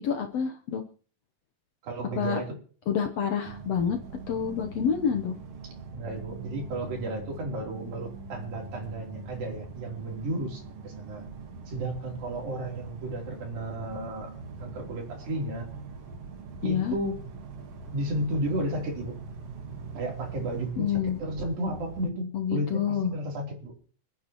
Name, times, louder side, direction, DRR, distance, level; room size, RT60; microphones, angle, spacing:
voice 1, 0.0-0.8 2.2-2.4 2.9-4.0 4.3-5.3 16.6-17.0 20.8-21.2 22.3-23.1, left 7 dB, 65° left, 5 dB, 1.7 m, -28 dB
voice 2, 1.8-2.6 5.9-11.3 11.7-14.3 14.6-15.7 16.6-17.2 17.9-19.2 20.0-23.7, right 1 dB, 85° right, 0 dB, 5.3 m, -33 dB
sound 1, 3.4-22.1, right 4 dB, 55° right, 2.2 m, -42 dB
28.5 x 9.7 x 3.0 m, 0.43 s
omnidirectional pair, 4.0 m